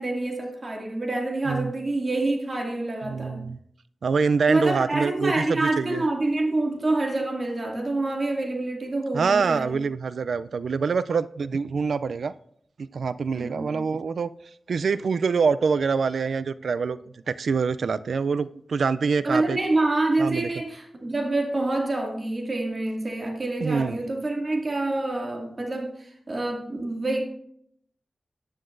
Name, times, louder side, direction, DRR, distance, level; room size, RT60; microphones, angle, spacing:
voice 1, 0.0-3.4 4.5-9.7 13.3-13.9 19.2-27.2, right 2 dB, 45° right, 2.3 m, -27 dB
voice 2, 3.0-3.6 4.0-6.0 9.1-12.3 12.8-14.3 14.7-17.0 17.3-19.6 20.2-20.5 23.6-24.0, right 5 dB, 80° right, 0.4 m, -25 dB
14.0 x 9.7 x 2.6 m
wide cardioid pair, 70°, 0 cm